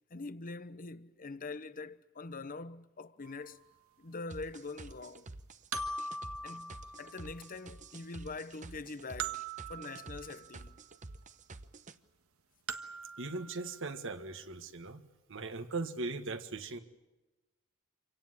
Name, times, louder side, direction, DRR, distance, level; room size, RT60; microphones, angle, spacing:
voice 1, 0.1-3.6 4.0-5.3 6.4-9.4 9.7-10.8, left 3 dB, 40° left, 0.9 m, -44 dB
sound 1, 3.3-3.4 5.7-7.6 9.2-10.8 12.7-14.1, right 3 dB, 85° right, 1.5 m, -42 dB
sound 2, 4.3-11.9, right 3 dB, 35° right, 0.9 m, -49 dB
voice 2, 13.2-15.0 15.3-16.8, right 3 dB, 60° right, 1.8 m, -39 dB
26.5 x 17.5 x 9.9 m
head